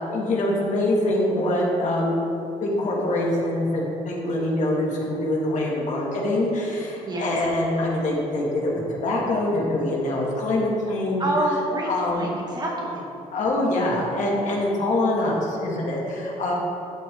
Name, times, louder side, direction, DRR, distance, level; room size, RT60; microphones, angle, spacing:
voice 1, 0.0-2.2 2.6-11.2 11.8-12.3 13.3-16.5, left 1 dB, 60° left, -3 dB, 2.5 m, -24 dB
voice 2, 11.2-13.1, right 1 dB, 30° right, -2 dB, 2.5 m, -27 dB
12.5 x 7.9 x 3.9 m, 2.7 s
supercardioid pair, 70°, 14 cm